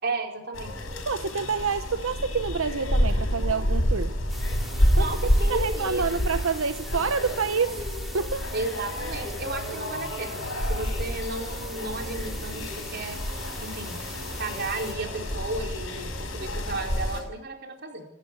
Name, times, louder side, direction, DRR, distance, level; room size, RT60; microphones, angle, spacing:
voice 1, 0.0-0.8 4.9-6.1 8.5-13.2 13.6-14.1 14.4-18.1, right 2 dB, 55° right, 4.6 m, -34 dB
sound 1, 0.5-17.2, equal, 80° left, 6.0 m, -29 dB
voice 2, 1.1-4.2 4.9-8.5, right 5 dB, 85° right, 0.9 m, -28 dB
sound 2, 4.3-14.9, equal, ahead, 3.8 m, -43 dB
27.0 x 13.5 x 8.5 m
head